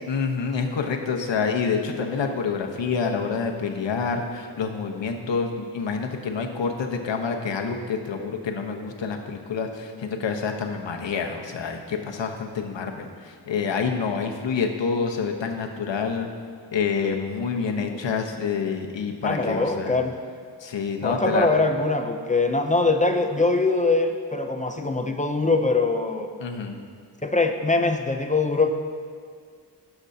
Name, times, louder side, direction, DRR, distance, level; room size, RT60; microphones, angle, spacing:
voice 1, 0.1-16.3 16.7-20.0 20.6-21.6 26.4-26.8, left 5 dB, 90° left, 3 dB, 1.0 m, -27 dB
voice 2, 19.2-20.1 21.0-26.3 27.2-28.7, left 3 dB, 20° left, 5 dB, 0.4 m, -22 dB
18.0 x 7.1 x 2.7 m, 2.1 s
wide cardioid pair, 165°, 43 cm